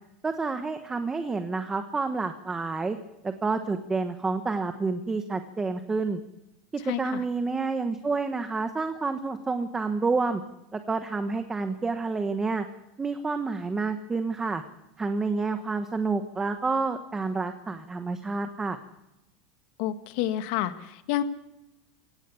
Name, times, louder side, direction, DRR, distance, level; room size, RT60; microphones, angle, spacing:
voice 1, 0.2-3.0 3.2-6.2 6.8-10.4 10.7-12.6 13.0-14.6 15.0-18.8, right 4 dB, 10° right, 8 dB, 1.2 m, -29 dB
voice 2, 6.9-7.2 19.8-21.2, left 13 dB, 60° left, 9 dB, 1.8 m, -29 dB
24.5 x 17.5 x 7.1 m, 0.90 s
supercardioid pair, 160°, 4 cm